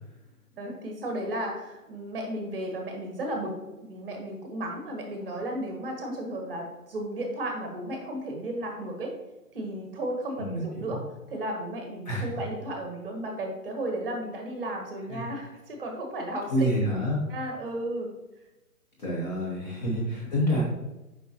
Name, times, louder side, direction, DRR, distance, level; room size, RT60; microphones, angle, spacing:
voice 1, 0.6-3.5 3.8-9.1 9.5-11.0 11.3-16.7 17.3-18.1 19.9-20.0, right 1 dB, 35° right, 2 dB, 1.2 m, -34 dB
voice 2, 10.4-11.0 12.0-12.4 15.1-15.2 16.5-17.2 19.0-20.6, equal, 30° left, -5 dB, 1.1 m, -28 dB
6.8 x 5.3 x 2.8 m, 1.0 s
hypercardioid pair, 160°, 46 cm